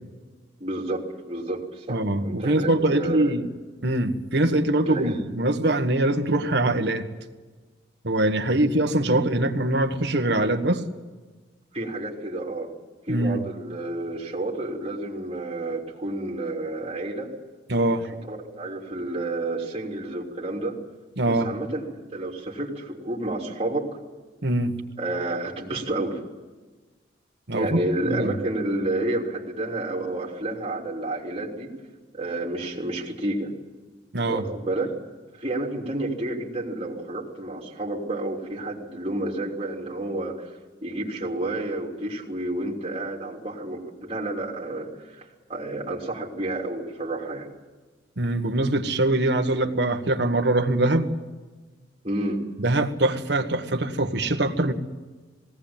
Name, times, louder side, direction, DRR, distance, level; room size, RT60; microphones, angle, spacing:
voice 1, 0.6-3.3 4.8-5.1 11.7-12.7 13.1-17.3 18.3-20.8 21.3-24.0 25.0-26.2 27.5-31.7 32.1-33.5 34.2-34.9 35.3-40.5 40.8-47.5 52.0-52.4, right 2 dB, 30° right, -2 dB, 3.3 m, -30 dB
voice 2, 1.9-3.4 3.8-7.1 8.0-10.9 13.1-13.4 17.7-18.1 21.2-21.5 24.4-24.7 27.5-28.3 34.1-34.4 48.2-51.1 52.6-54.7, right 1 dB, 65° right, 6 dB, 1.6 m, -23 dB
19.5 x 18.0 x 8.8 m, 1.3 s
head